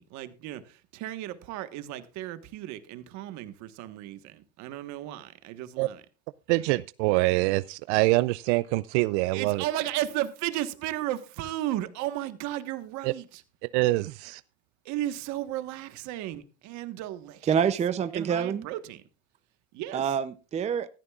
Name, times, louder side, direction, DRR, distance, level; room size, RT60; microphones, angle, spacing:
voice 1, 0.0-6.0 9.3-13.4 14.8-17.5 18.1-19.0 19.7-20.2, right 14 dB, 55° right, 1.4 m, -34 dB
voice 2, 6.5-9.6 13.0-13.1 13.6-14.4, right 21 dB, 80° right, 0.5 m, -25 dB
voice 3, 17.5-18.6 19.9-20.9, right 8 dB, 20° right, 0.6 m, -26 dB
16.0 x 13.5 x 2.4 m
cardioid pair, 145°, 34 cm